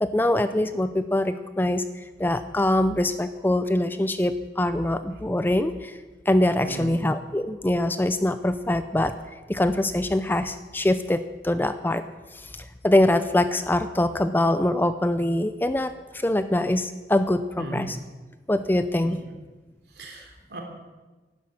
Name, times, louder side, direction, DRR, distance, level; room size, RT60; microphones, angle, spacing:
voice 1, 0.0-6.0 6.3-9.2 9.5-12.0 12.3-18.0 18.5-19.2, left 1 dB, 10° left, 11 dB, 0.5 m, -24 dB
voice 2, 6.6-6.9 17.6-17.8 19.0-19.2 20.0-20.6, right 2 dB, 65° right, 1 dB, 3.4 m, -37 dB
12.0 x 11.5 x 8.6 m, 1.2 s
head